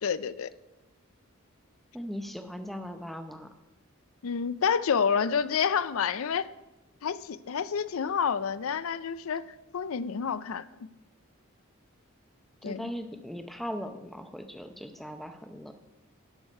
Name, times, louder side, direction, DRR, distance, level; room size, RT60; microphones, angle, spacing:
voice 1, 0.0-0.5 4.2-6.5 7.0-9.5 9.7-10.9 12.6-12.9, left 6 dB, 75° left, 16 dB, 0.5 m, -29 dB
voice 2, 1.9-3.5 12.6-15.7, equal, ahead, 7 dB, 0.7 m, -39 dB
11.5 x 6.6 x 5.4 m, 1.0 s
head